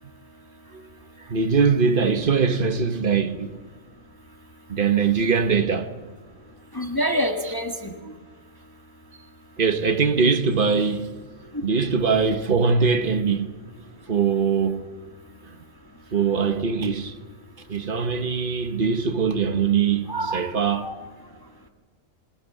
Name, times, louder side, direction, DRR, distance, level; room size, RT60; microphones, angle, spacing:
voice 1, 1.3-3.5 4.7-5.9 9.6-11.1 11.6-13.5 14.1-14.9 16.1-17.1 17.7-20.9, right 5 dB, 45° right, 1.4 m, -22 dB
voice 2, 6.7-7.9 20.1-20.9, equal, 15° left, 1.6 m, -27 dB
26.5 x 16.5 x 8.5 m
omnidirectional pair, 1.3 m